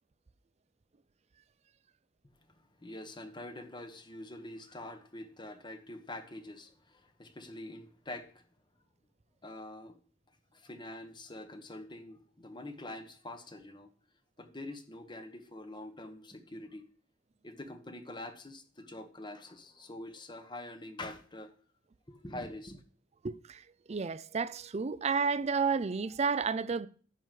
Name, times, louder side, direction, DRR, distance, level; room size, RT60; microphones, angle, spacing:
voice 1, 2.8-8.4 9.4-10.0 10.5-13.9 14.4-16.9 17.4-21.5 22.1-22.8, left 1 dB, 25° left, 1.1 m, -45 dB
voice 2, 23.2-26.9, right 5 dB, 35° right, 0.5 m, -31 dB
10.5 x 4.8 x 7.6 m
head